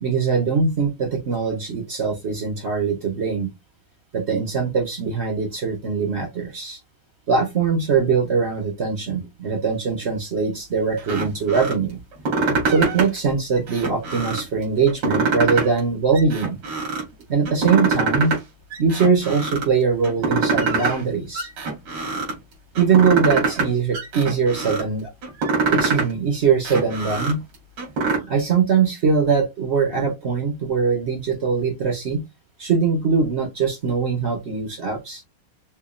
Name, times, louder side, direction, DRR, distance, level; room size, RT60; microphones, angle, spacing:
voice 1, 0.0-3.5 4.1-6.8 7.3-12.0 12.5-16.6 17.3-18.4 18.8-21.5 22.8-25.1 25.7-27.4 28.3-32.2 32.6-35.2, right 5 dB, 50° right, 0.8 m, -21 dB
sound 1, 11.0-11.7 12.1-13.2 13.6-14.5 14.9-15.8 16.1-17.0 17.5-18.4 18.7-19.7 20.0-21.0 21.3-22.3 22.7-23.7 23.9-24.8 25.2-26.1 26.5-28.2, right 3 dB, 90° right, 2.9 m, -24 dB
6.0 x 2.3 x 2.4 m
omnidirectional pair, 2.3 m